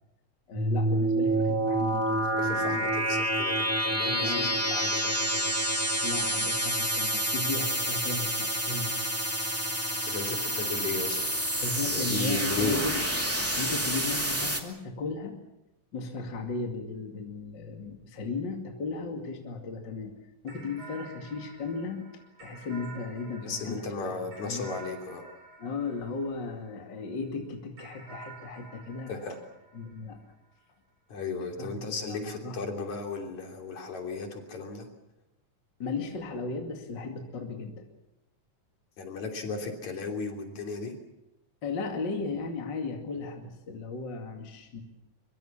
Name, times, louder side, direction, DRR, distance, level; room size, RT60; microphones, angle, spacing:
voice 1, 0.5-2.8 4.2-4.6 6.0-8.9 11.6-13.0 13.6-15.4 15.9-20.1 20.4-22.1 22.4-24.2 24.4-24.6 25.6-29.1 29.7-30.2 31.6-32.6 35.8-37.8 41.6-44.8, left 4 dB, 35° left, 3 dB, 2.8 m, -36 dB
sound 1, 0.5-14.6, right 1 dB, 5° right, 1.8 m, -28 dB
voice 2, 2.4-5.6 10.0-11.2 11.9-12.8 23.4-25.2 29.1-29.4 31.1-34.9 39.0-41.0, left 4 dB, 60° left, 3 dB, 4.5 m, -35 dB
sound 2, 20.5-27.1 27.8-30.5, right 3 dB, 65° right, 7.5 m, -50 dB
23.5 x 23.5 x 7.3 m, 0.91 s
omnidirectional pair, 3.7 m